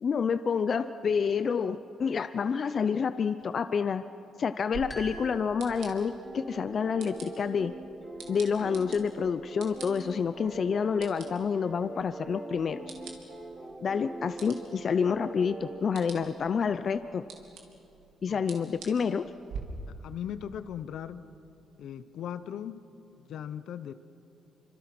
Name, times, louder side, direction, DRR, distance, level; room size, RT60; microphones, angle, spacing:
voice 1, 0.0-4.0 4.4-7.7 8.3-12.9 13.8-17.2 18.2-19.2, left 6 dB, 50° left, 11 dB, 0.6 m, -28 dB
sound 1, 4.7-19.6, right 6 dB, 80° right, 3.1 m, -49 dB
sound 2, 4.9-6.5, right 1 dB, 15° left, 3.5 m, -47 dB
sound 3, 5.1-15.8, right 2 dB, 25° right, 4.4 m, -42 dB
voice 2, 20.0-21.2 21.8-22.8 23.3-23.9, left 9 dB, 75° left, 13 dB, 0.9 m, -38 dB
27.5 x 25.5 x 6.1 m, 2.8 s
cardioid pair, 90°, 0 cm